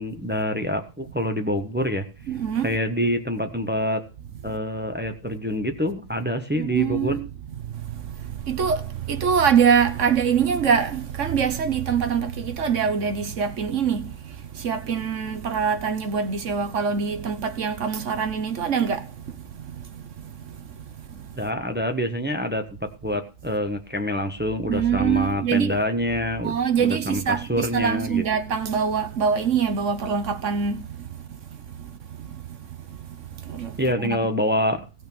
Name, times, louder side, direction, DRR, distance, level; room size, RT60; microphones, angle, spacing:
voice 1, 0.0-2.0 2.6-4.0 4.4-7.2 21.3-28.2 33.8-34.8, left 1 dB, 10° right, 0.6 m, -26 dB
voice 2, 2.3-2.7 6.6-7.2 7.7-20.0 20.4-20.6 21.1-21.2 24.7-25.7 26.4-31.1 32.2-32.4 33.1-34.2, right 7 dB, 45° right, 1.1 m, -24 dB
16.0 x 6.5 x 6.2 m
omnidirectional pair, 2.2 m